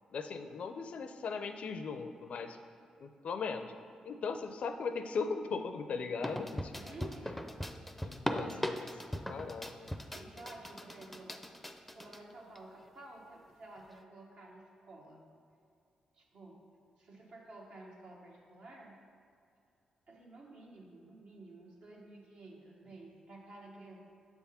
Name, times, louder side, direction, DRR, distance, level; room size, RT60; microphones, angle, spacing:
voice 1, 0.1-2.6 3.0-3.7 4.0-6.7 7.0-7.1 8.0-8.7 9.3-9.9, left 5 dB, 70° left, 8 dB, 0.4 m, -38 dB
sound 1, 6.2-12.2 12.6-12.7 13.5-13.6, equal, 5° left, 0.4 m, -39 dB
voice 2, 6.7-7.5 8.3-8.8 10.1-11.3 11.9-15.2 16.1-19.0 20.1-24.1, right 2 dB, 75° right, -2 dB, 1.3 m, -52 dB
6.9 x 3.5 x 5.6 m, 2.5 s
cardioid pair, 65°, 2 cm